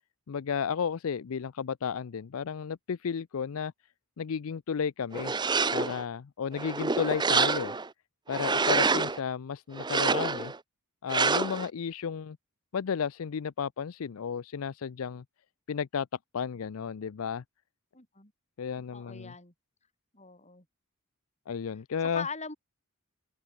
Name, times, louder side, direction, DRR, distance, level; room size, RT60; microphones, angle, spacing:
voice 1, 0.3-3.7 4.2-5.3 5.7-7.7 8.3-10.5 11.0-12.4 12.7-15.2 15.7-16.1 16.3-17.4 18.6-19.3 21.5-22.3, left 6 dB, 75° left, 0.5 m, -33 dB
sound 1, 5.1-6.0 6.5-7.9 8.3-9.2 9.8-10.6 11.1-11.7, right 4 dB, 20° right, 0.7 m, -27 dB
voice 2, 17.9-18.3 18.9-19.5 20.1-20.6 22.1-22.6, left 5 dB, 30° left, 7.9 m, -41 dB
open air
head